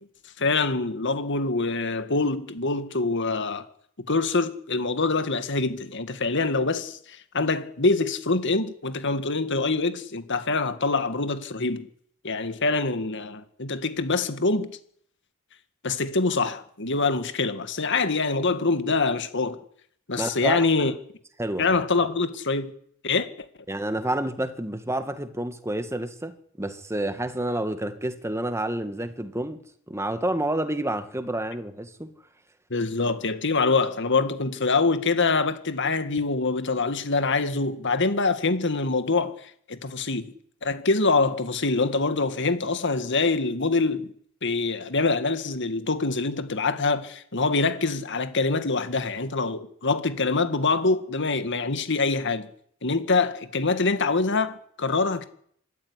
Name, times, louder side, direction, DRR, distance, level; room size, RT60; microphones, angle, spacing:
voice 1, 0.4-3.7 4.1-11.9 12.2-14.8 15.8-19.6 20.1-20.9 21.6-22.7 23.0-23.3 32.7-40.3 40.6-44.1 44.4-52.5 52.8-55.3, left 3 dB, 60° left, 2.0 m, -25 dB
voice 2, 20.2-20.9 21.4-21.7 23.7-29.6 29.9-32.1, right 1 dB, 15° right, 1.9 m, -29 dB
25.5 x 13.0 x 9.9 m
head